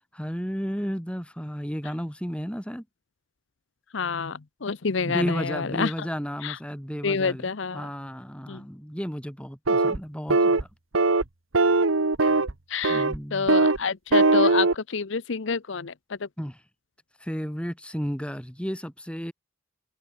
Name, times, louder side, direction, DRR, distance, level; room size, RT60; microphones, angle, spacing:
voice 1, 0.1-2.8 5.1-10.7 12.9-13.5 16.4-16.6 17.2-19.3, equal, 5° left, 7.9 m, -33 dB
voice 2, 3.9-5.9 6.4-6.6 7.0-7.9 8.5-8.6 12.2-12.4 12.7-13.1 13.3-16.3, left 5 dB, 65° left, 0.7 m, -28 dB
sound 1, 9.7-10.0 10.3-10.6 10.9-11.2 11.5-12.5 12.8-13.2 13.5-13.8 14.1-14.7, right 3 dB, 85° right, 1.4 m, -20 dB
head